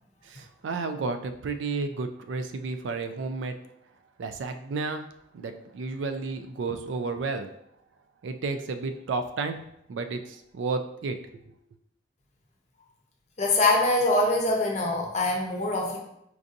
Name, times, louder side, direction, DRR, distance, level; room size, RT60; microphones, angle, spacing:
voice 1, 0.3-3.5 4.2-5.0 5.3-7.5 8.2-9.6 9.9-11.2, right 4 dB, 90° right, 8 dB, 0.4 m, -32 dB
voice 2, 13.4-16.0, left 2 dB, 40° left, 0 dB, 0.6 m, -24 dB
4.6 x 2.6 x 2.5 m, 0.76 s
head